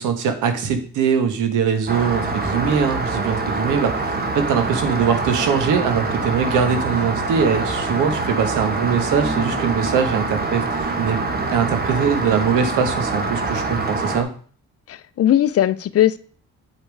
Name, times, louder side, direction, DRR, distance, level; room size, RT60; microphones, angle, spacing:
voice 1, 0.0-11.2 11.5-14.3, right 7 dB, 90° right, 8 dB, 1.4 m, -22 dB
Rain, 1.9-14.2, right 3 dB, 30° right, 1.5 m, -25 dB
voice 2, 14.9-16.2, left 12 dB, 50° left, 15 dB, 0.6 m, -18 dB
8.3 x 5.3 x 4.7 m, 0.43 s
cardioid pair, 90°, 30 cm